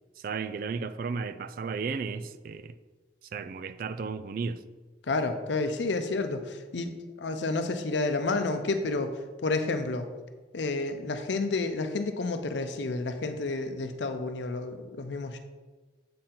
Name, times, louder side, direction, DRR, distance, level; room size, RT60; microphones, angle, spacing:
voice 1, 0.2-2.7 3.3-4.6, right 5 dB, 50° right, 0.3 m, -34 dB
voice 2, 5.1-10.1 10.5-15.4, left 3 dB, 90° left, 0.6 m, -30 dB
7.6 x 4.3 x 3.8 m
head